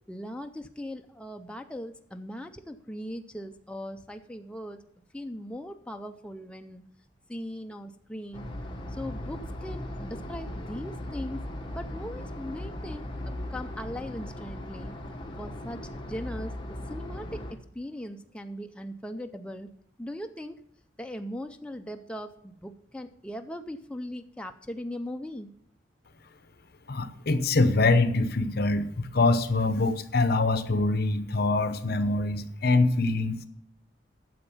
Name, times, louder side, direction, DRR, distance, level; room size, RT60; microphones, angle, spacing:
voice 1, 0.1-4.8 5.1-6.8 7.3-8.5 8.9-11.4 11.7-13.1 13.5-14.9 15.4-16.5 16.9-19.7 20.0-20.6 21.0-25.5, equal, 5° left, 5 dB, 0.5 m, -39 dB
sound 1, 8.3-17.5, left 1 dB, 30° left, 1.4 m, -38 dB
voice 2, 26.9-33.5, left 3 dB, 60° left, 11 dB, 0.8 m, -24 dB
9.4 x 7.0 x 7.0 m, 0.71 s
head